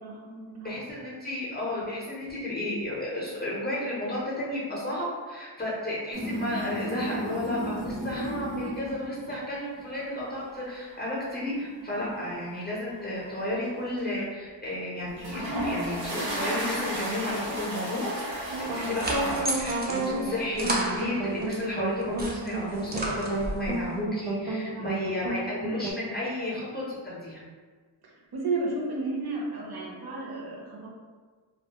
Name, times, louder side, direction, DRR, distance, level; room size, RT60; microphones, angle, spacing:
voice 1, 0.0-0.7 17.8-17.9 24.7-25.3 28.3-30.9, right 3 dB, 55° right, -3 dB, 0.7 m, -33 dB
voice 2, 0.6-27.4, left 1 dB, 20° left, -7 dB, 0.6 m, -33 dB
sound 1, 6.1-9.3 9.7-10.1 11.6-13.2 13.6-14.0 15.0-19.4, equal, 70° right, 1.0 m, -33 dB
sound 2, 18.5-25.9, right 2 dB, 90° right, 0.6 m, -32 dB
sound 3, 18.6-21.6 22.0-23.7, right 1 dB, 25° right, 0.3 m, -33 dB
2.2 x 2.0 x 2.8 m, 1.5 s
cardioid pair, 90°, 47 cm